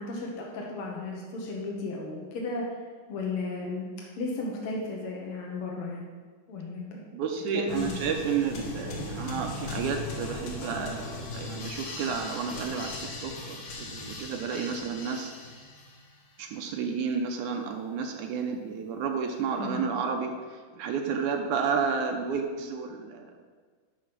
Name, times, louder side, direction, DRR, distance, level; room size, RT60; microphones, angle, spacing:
voice 1, 0.0-2.8 3.1-3.9 4.2-6.1 6.5-7.0 7.5-8.0 19.5-19.8, left 3 dB, 75° left, -2 dB, 1.2 m, -34 dB
voice 2, 7.1-15.3 16.4-23.4, right 6 dB, 80° right, 3 dB, 1.8 m, -31 dB
sound 1, 7.7-16.1, left 3 dB, 60° left, 2.2 m, -38 dB
9.3 x 4.8 x 6.0 m, 1.5 s
omnidirectional pair, 4.0 m